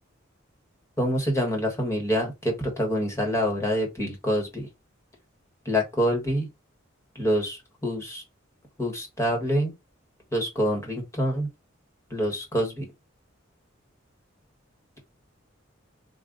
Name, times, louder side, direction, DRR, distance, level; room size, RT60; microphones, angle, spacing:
voice 1, 1.0-4.7 5.6-6.5 7.1-8.2 8.8-9.7 10.3-11.5 12.1-12.9, equal, 15° left, 1.3 m, -26 dB
3.6 x 2.4 x 3.8 m
head